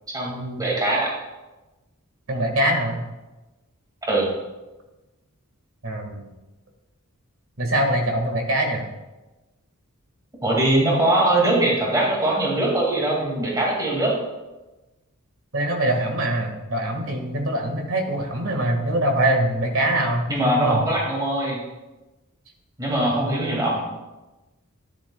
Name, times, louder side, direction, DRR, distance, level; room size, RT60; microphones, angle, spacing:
voice 1, 0.1-1.1 4.0-4.3 10.4-14.1 20.3-21.6 22.8-23.8, right 1 dB, 15° right, -3 dB, 2.2 m, -21 dB
voice 2, 2.3-3.0 5.8-6.3 7.6-8.8 15.5-20.3 20.5-20.8, right 1 dB, 65° right, 3 dB, 1.8 m, -23 dB
12.5 x 10.0 x 2.3 m, 1.1 s
head